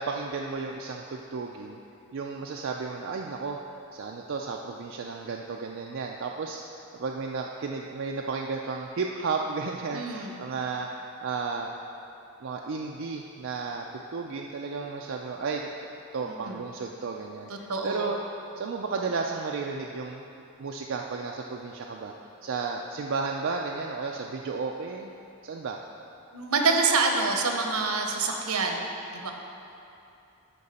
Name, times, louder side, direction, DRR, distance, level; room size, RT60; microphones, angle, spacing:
voice 1, 0.0-1.8 2.1-3.6 3.9-6.6 7.0-10.9 11.2-11.7 12.4-15.7 16.1-18.2 18.6-20.2 20.6-22.1 22.4-25.1 25.4-25.8, right 4 dB, 55° right, 0 dB, 0.4 m, -33 dB
voice 2, 9.9-10.4 16.2-16.6 17.5-18.1 26.3-29.3, right 4 dB, 80° right, 3 dB, 0.9 m, -27 dB
11.5 x 4.7 x 4.2 m, 2.7 s
head